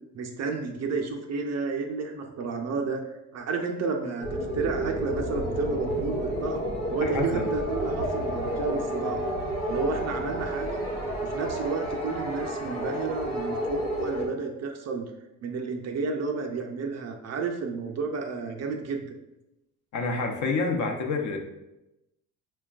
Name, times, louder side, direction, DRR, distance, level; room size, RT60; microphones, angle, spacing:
voice 1, 0.1-4.3 4.5-9.3 9.7-10.9 11.2-15.1 15.4-19.2, right 4 dB, 45° right, 3 dB, 0.5 m, -31 dB
sound 1, 4.2-14.3, equal, 80° left, 0.9 m, -30 dB
voice 2, 7.0-7.5 19.9-21.4, left 3 dB, 50° left, 3 dB, 0.6 m, -28 dB
4.3 x 2.2 x 2.3 m, 0.93 s
supercardioid pair, 85°, 38 cm